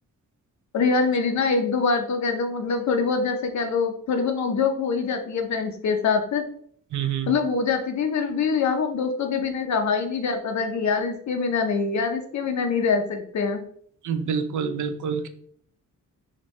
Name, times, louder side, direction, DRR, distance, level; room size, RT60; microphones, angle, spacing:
voice 1, 0.7-6.4 7.3-13.6, left 5 dB, 60° left, 6 dB, 0.7 m, -24 dB
voice 2, 6.9-7.3 14.0-15.3, right 7 dB, 65° right, 9 dB, 0.5 m, -27 dB
5.0 x 2.6 x 3.1 m, 0.62 s
wide cardioid pair, 180°, 32 cm